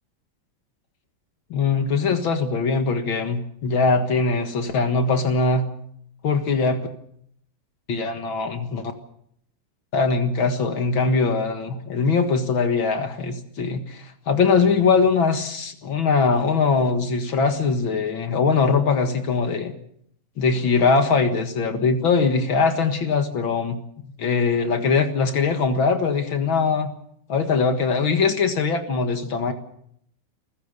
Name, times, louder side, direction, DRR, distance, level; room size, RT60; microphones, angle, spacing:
voice 1, 1.5-5.7 6.2-6.9 7.9-8.9 9.9-19.7 20.4-23.8 24.2-26.9 27.3-29.5, left 4 dB, 70° left, 7 dB, 2.4 m, -21 dB
29.0 x 15.5 x 6.8 m, 0.71 s
omnidirectional pair, 2.3 m